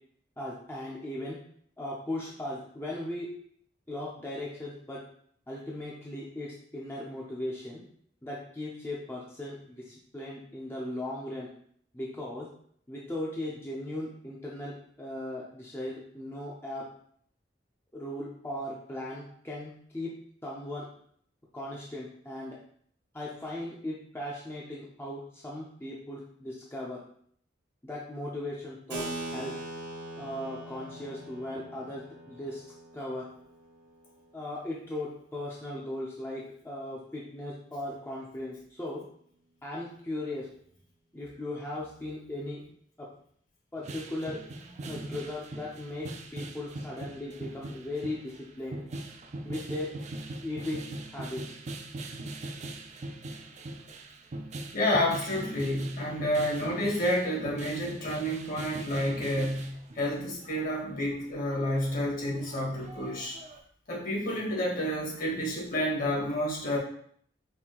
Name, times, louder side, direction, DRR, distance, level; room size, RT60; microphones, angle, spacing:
voice 1, 0.4-1.4 1.8-3.3 3.9-5.0 5.5-7.8 8.2-11.5 11.9-12.5 12.9-14.7 15.0-16.8 17.9-20.1 20.4-20.9 21.5-22.6 23.1-27.0 27.8-29.5 30.2-32.6 32.9-33.2 34.3-39.0 39.6-40.5 41.1-42.6 43.0-43.1 43.7-44.4 44.8-48.8 49.4-49.9 50.4-50.8 51.1-51.5, left 1 dB, 15° left, -5 dB, 0.6 m, -37 dB
Keyboard (musical), 28.9-34.9, right 1 dB, 70° right, 1.1 m, -42 dB
sound 1, 43.8-63.6, right 2 dB, 40° right, 0.4 m, -41 dB
voice 2, 54.7-63.4 63.9-66.8, left 1 dB, 50° left, -2 dB, 1.3 m, -30 dB
5.3 x 2.7 x 2.9 m, 0.62 s
head